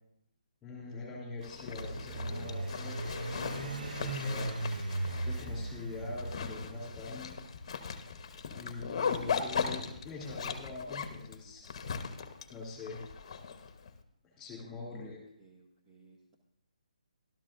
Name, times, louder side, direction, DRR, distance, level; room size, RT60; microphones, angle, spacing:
voice 1, 0.6-4.6 5.2-7.4 8.5-11.7 12.2-13.0 14.3-15.3, left 3 dB, 10° left, -3 dB, 3.1 m, -44 dB
Zipper (clothing), 1.4-13.9, left 6 dB, 40° left, 0.9 m, -39 dB
sound 1, 1.7-7.1, right 2 dB, 75° right, 1.2 m, -38 dB
Drum kit / Drum, 3.6-10.9, left 4 dB, 25° left, 1.4 m, -53 dB
voice 2, 14.9-16.4, right 2 dB, 20° right, 1 dB, 0.8 m, -56 dB
13.5 x 13.0 x 2.5 m, 0.76 s
hypercardioid pair, 165°, 4 cm